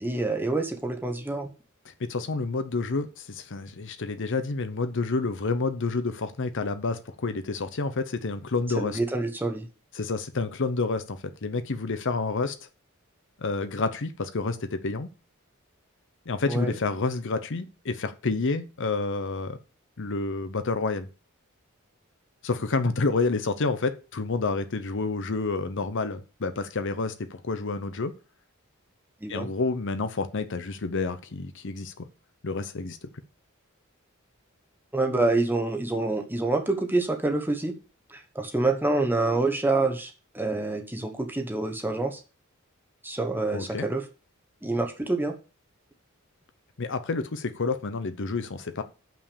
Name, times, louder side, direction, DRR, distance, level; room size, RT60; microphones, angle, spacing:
voice 1, 0.0-1.5 8.8-9.7 16.5-16.7 29.2-29.5 34.9-37.7 38.1-42.2 43.0-44.0 44.6-45.3, right 2 dB, 10° right, 1.0 m, -27 dB
voice 2, 2.0-9.0 9.9-12.6 13.4-15.1 16.3-19.6 20.0-21.1 22.4-28.1 29.3-32.1 32.4-33.0 43.5-43.9 46.8-48.8, left 3 dB, 60° left, 0.8 m, -29 dB
7.2 x 5.9 x 6.8 m
head